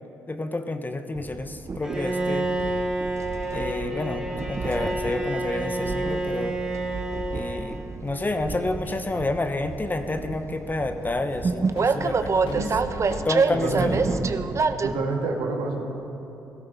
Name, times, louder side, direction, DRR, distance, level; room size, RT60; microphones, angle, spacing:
voice 1, 0.3-2.5 3.5-6.6 7.3-12.7 13.2-14.2, left 2 dB, 25° left, 8 dB, 1.0 m, -29 dB
Train, 1.2-14.9, right 4 dB, 40° right, 0.7 m, -29 dB
Bowed string instrument, 1.8-8.1, right 1 dB, 10° right, 1.9 m, -29 dB
sound 1, 4.8-5.5 5.8-6.4 6.7-9.1 9.6-9.7 10.0-10.7 11.6-12.1 12.5-13.5, left 5 dB, 80° left, 0.9 m, -46 dB
voice 2, 13.5-13.9 14.8-15.8, right 3 dB, 80° right, 1 dB, 1.8 m, -28 dB
17.0 x 13.5 x 4.2 m, 3.0 s
supercardioid pair, 55°, 8 cm